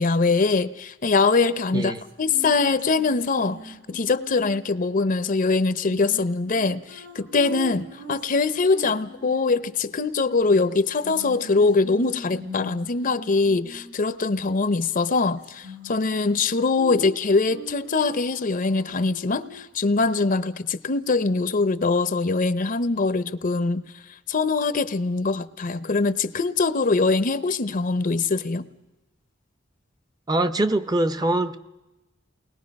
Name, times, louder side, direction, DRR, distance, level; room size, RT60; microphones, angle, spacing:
voice 1, 0.0-23.8 24.3-28.7, left 3 dB, 45° left, 0.7 m, -23 dB
sound 1, 1.4-4.7 5.9-9.6 11.0-14.1 15.4-16.4 16.7-19.7, equal, 65° right, 4.3 m, -41 dB
voice 2, 30.3-31.6, right 1 dB, 20° right, 0.7 m, -23 dB
29.5 x 20.5 x 5.3 m
head